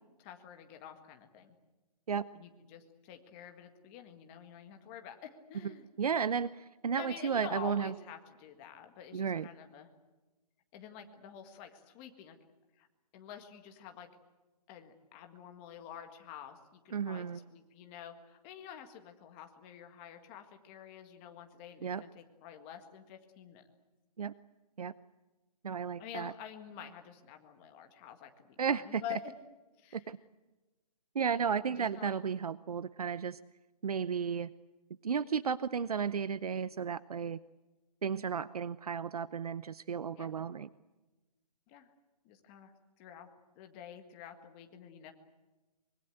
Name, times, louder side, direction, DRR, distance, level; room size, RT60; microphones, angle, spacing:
voice 1, 0.2-1.5 2.3-5.9 7.0-9.9 10.7-12.4 12.8-12.9 13.1-14.1 14.7-23.6 26.0-29.3 29.8-30.1 31.7-32.1 40.2-40.3 41.7-41.9 42.2-43.3 43.6-45.1, left 9 dB, 15° left, 5 dB, 1.8 m, -48 dB
voice 2, 6.0-7.9 9.1-9.5 16.9-17.4 21.8-22.0 24.2-24.3 24.8-24.9 25.6-26.3 28.6-29.2 29.9-30.2 31.1-33.4 33.8-34.5 35.0-37.4 38.0-40.7, right 6 dB, 65° right, 16 dB, 0.8 m, -33 dB
25.0 x 24.0 x 8.0 m, 1.1 s
hypercardioid pair, 170°, 21 cm